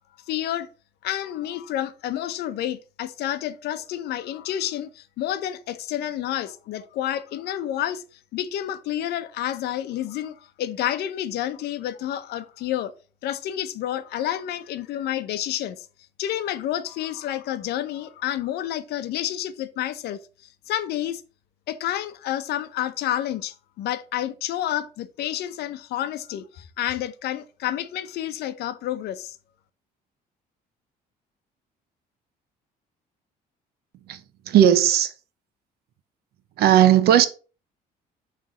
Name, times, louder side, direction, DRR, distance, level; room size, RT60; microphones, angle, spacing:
voice 1, 0.3-0.7 1.0-8.0 8.3-12.9 13.2-15.9 16.2-20.2 20.7-21.2 21.7-29.4, left 12 dB, 75° left, 0.7 m, -29 dB
voice 2, 34.5-35.1 36.6-37.3, right 10 dB, 70° right, 0.8 m, -16 dB
7.3 x 3.3 x 4.9 m
cardioid pair, 110°, 17 cm